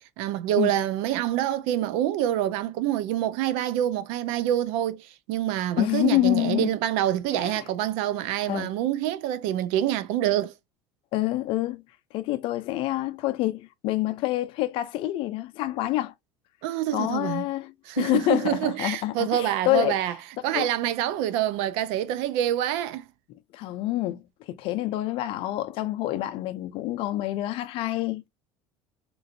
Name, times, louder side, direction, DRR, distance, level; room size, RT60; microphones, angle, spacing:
voice 1, 0.0-10.5 16.6-17.4 17.9-20.1 20.4-23.0, right 12 dB, 75° right, 0.4 m, -26 dB
voice 2, 5.8-6.7 7.3-7.6 8.5-8.7 11.1-11.8 12.1-16.1 16.9-20.0 20.5-20.7 23.5-28.3, left 16 dB, 60° left, 0.4 m, -27 dB
3.0 x 2.5 x 2.5 m
cardioid pair, 120°, 10 cm